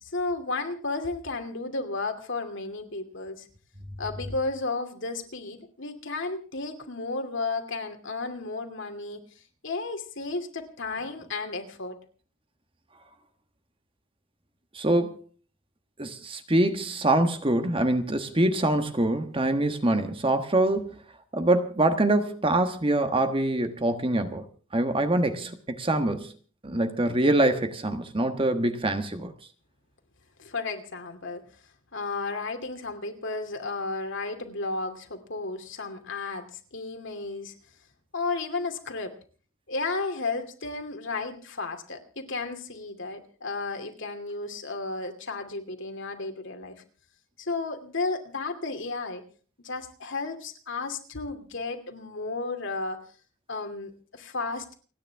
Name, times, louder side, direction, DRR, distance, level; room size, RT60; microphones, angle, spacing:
voice 1, 0.0-3.5 4.0-9.2 9.6-12.0 30.4-31.4 31.9-37.5 38.1-39.1 39.7-46.8 47.4-49.2 49.6-53.0 53.5-54.7, left 3 dB, 60° left, 2.7 m, -33 dB
voice 2, 14.7-15.2 16.0-21.0 21.3-24.4 24.7-26.3 26.6-29.3, right 1 dB, 25° right, 1.4 m, -24 dB
29.5 x 10.0 x 3.5 m
head